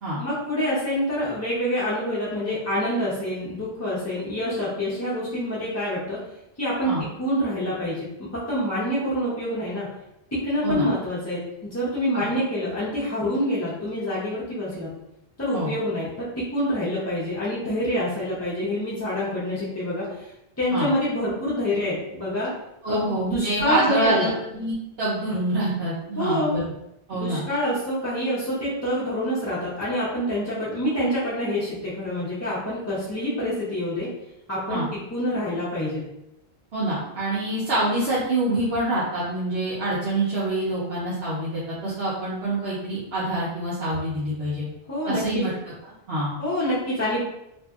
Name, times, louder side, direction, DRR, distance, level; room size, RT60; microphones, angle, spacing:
voice 1, 0.2-6.2 6.6-6.9 7.2-8.1 8.3-9.9 10.4-14.9 15.4-20.3 20.6-22.5 22.9-24.3 26.2-26.5 27.1-34.1 34.5-34.8 35.1-36.0 44.9-45.4 46.4-47.2, equal, 20° left, -9 dB, 0.5 m, -26 dB
voice 2, 22.8-26.6 27.1-27.4 34.7-34.8 36.7-44.6 45.1-45.5 46.1-46.3, right 1 dB, 75° right, -9 dB, 1.0 m, -26 dB
2.6 x 2.6 x 2.3 m, 0.83 s
omnidirectional pair, 1.0 m